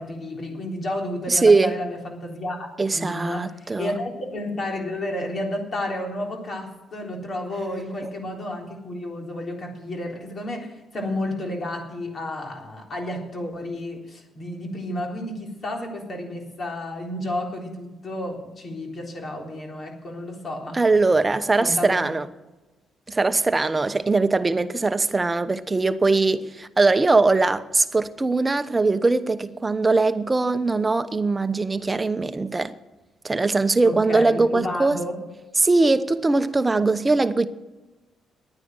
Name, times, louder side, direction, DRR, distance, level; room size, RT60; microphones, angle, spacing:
voice 1, 0.0-2.7 2.9-20.8 21.6-22.1 33.8-35.1, left 1 dB, 45° left, 3.8 m, -31 dB
voice 2, 1.3-1.8 2.8-3.9 20.7-22.3 23.1-32.7 33.2-35.0 35.6-37.5, right 3 dB, 20° right, 0.9 m, -21 dB
11.0 x 9.7 x 9.6 m
cardioid pair, 90°, 0 cm